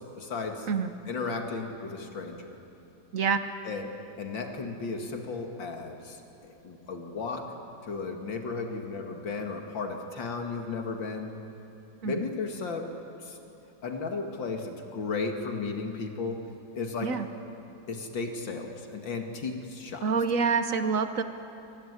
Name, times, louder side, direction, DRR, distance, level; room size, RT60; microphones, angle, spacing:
voice 1, 0.2-0.7 1.1-2.6 3.6-3.9 4.2-7.5 7.8-11.4 12.0-12.9 13.2-13.4 13.8-16.4 16.8-17.2 17.9-20.1, left 4 dB, 80° left, 3 dB, 2.8 m, -34 dB
voice 2, 3.1-3.4 12.0-12.1 17.0-17.3 20.0-21.2, right 5 dB, 55° right, 9 dB, 1.1 m, -26 dB
24.5 x 19.5 x 9.6 m, 2.8 s
omnidirectional pair, 2.0 m